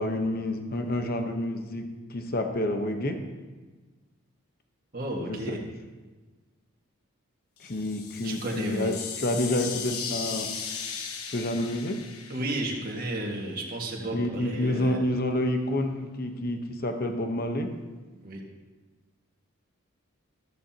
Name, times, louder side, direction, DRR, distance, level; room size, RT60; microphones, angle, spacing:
voice 1, 0.0-3.2 5.2-5.6 7.6-10.5 11.3-12.0 14.1-17.7, left 1 dB, 45° left, 5 dB, 1.0 m, -29 dB
voice 2, 4.9-5.6 8.2-8.9 12.3-15.0 18.2-18.4, right 1 dB, 40° right, -1 dB, 1.8 m, -32 dB
sound 1, 7.6-13.5, left 6 dB, 90° left, 1.1 m, -37 dB
14.0 x 13.5 x 2.9 m, 1.3 s
head